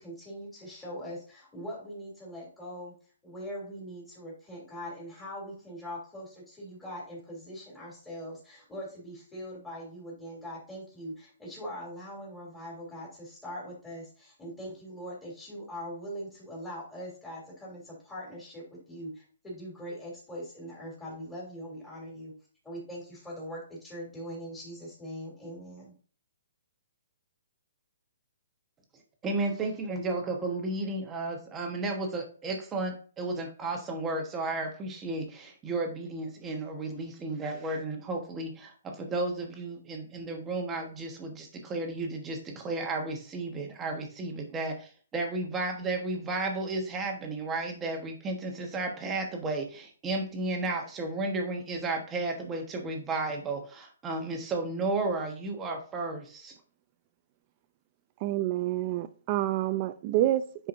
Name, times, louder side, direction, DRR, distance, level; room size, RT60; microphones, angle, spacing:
voice 1, 0.0-2.9 3.2-22.3 22.6-25.9, equal, 10° left, 3.1 m, -42 dB
voice 2, 29.2-56.5, right 2 dB, 15° right, 1.2 m, -33 dB
voice 3, 58.2-60.7, right 14 dB, 30° right, 0.5 m, -28 dB
10.0 x 4.6 x 2.6 m
hypercardioid pair, 160°, 0 cm